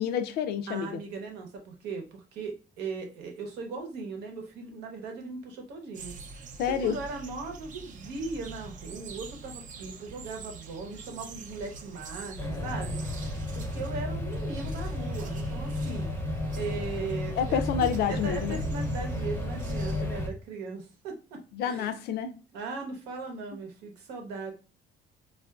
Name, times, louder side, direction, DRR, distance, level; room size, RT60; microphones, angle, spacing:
voice 1, 0.0-1.0 6.6-7.0 17.4-18.6 19.9-20.1 21.5-22.3, left 8 dB, 70° left, 0.4 m, -29 dB
voice 2, 0.7-13.0 13.5-16.1 16.6-22.0 22.5-24.5, right 4 dB, 90° right, 0.9 m, -38 dB
sound 1, 5.9-20.0, right 4 dB, 50° right, 0.5 m, -45 dB
sound 2, 12.4-20.3, left 1 dB, 15° left, 0.5 m, -33 dB
3.6 x 2.4 x 2.3 m
cardioid pair, 110°, 17 cm